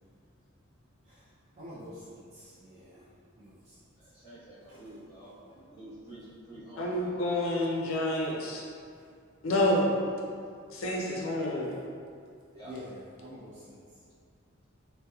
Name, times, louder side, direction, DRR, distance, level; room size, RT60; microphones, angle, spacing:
voice 1, 1.6-3.0 3.4-3.7 4.7-4.8 12.6-13.8, equal, 35° right, -11 dB, 0.4 m, -47 dB
voice 2, 3.9-7.1 10.3-10.4 12.5-12.7, right 1 dB, 10° left, -19 dB, 0.8 m, -49 dB
voice 3, 6.8-8.6 9.4-9.9 10.7-11.7, left 1 dB, 80° left, -3 dB, 0.5 m, -28 dB
2.8 x 2.1 x 2.2 m, 2.2 s
head